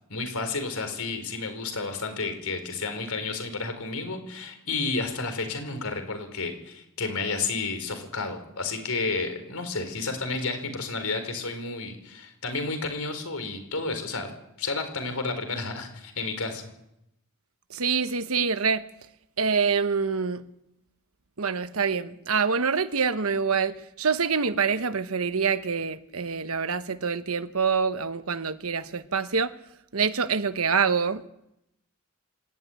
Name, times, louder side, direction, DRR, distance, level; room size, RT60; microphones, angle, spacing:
voice 1, 0.1-14.3 14.6-16.7, left 3 dB, 90° left, 4.7 m, -31 dB
voice 2, 17.7-18.8 19.4-20.4 21.4-29.5 29.9-31.3, right 5 dB, 75° right, 1.1 m, -26 dB
26.0 x 12.5 x 9.2 m
head